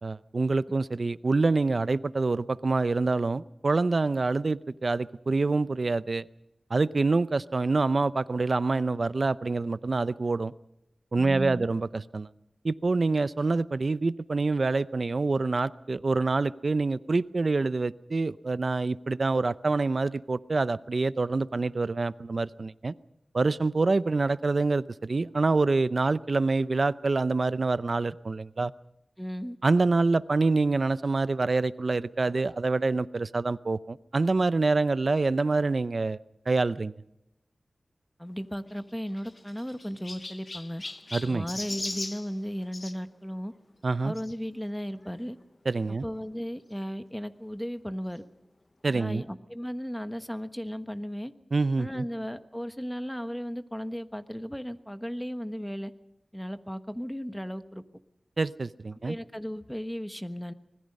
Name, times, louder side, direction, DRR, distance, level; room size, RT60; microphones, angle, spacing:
voice 1, 0.0-6.2 6.7-10.5 11.1-12.3 12.6-22.9 23.3-28.7 29.6-36.2 36.5-36.9 41.1-41.5 43.8-44.1 45.7-46.1 48.8-49.2 51.5-52.0 58.4-59.2, right 3 dB, 55° right, 16 dB, 0.6 m, -26 dB
voice 2, 11.1-11.7 29.2-29.6 38.2-40.8 41.2-43.5 44.0-45.4 46.0-48.2 48.9-51.3 51.8-55.9 56.3-57.8 59.0-60.5, equal, 5° left, 10 dB, 1.2 m, -35 dB
Chirp tweet, 38.7-43.0 44.1-44.3 45.0-45.1 45.3-45.4 46.7-46.8, left 2 dB, 40° left, 0.8 m, -39 dB
25.0 x 20.5 x 5.4 m, 0.88 s
wide cardioid pair, 65°, 0 cm